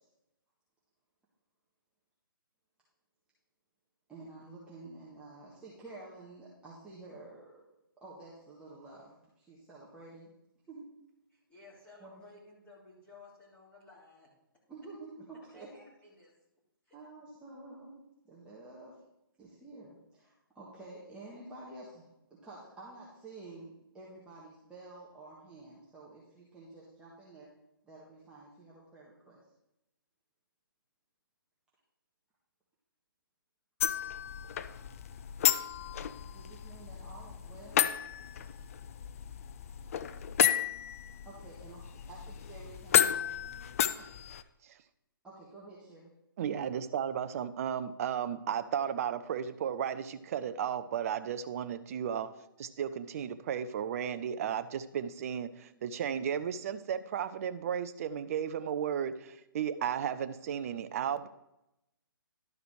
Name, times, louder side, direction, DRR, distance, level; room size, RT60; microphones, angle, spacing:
voice 1, 4.1-7.5 8.0-10.3 10.7-10.9 12.0-12.1 14.7-15.8 16.9-19.0 19.4-27.5 27.8-29.4 36.3-37.8 41.2-41.8 42.1-43.4 45.2-46.1, right 2 dB, 10° right, -8 dB, 1.6 m, -50 dB
voice 2, 11.3-14.3 15.5-16.3 16.8-17.0, left 3 dB, 10° left, -7 dB, 3.4 m, -56 dB
sound 1, 33.8-44.4, left 10 dB, 40° left, 0.4 m, -32 dB
voice 3, 46.4-52.3 52.6-61.3, right 8 dB, 40° right, 11 dB, 0.6 m, -34 dB
12.0 x 4.9 x 4.8 m, 0.86 s
figure-of-eight pair, 135°, 12 cm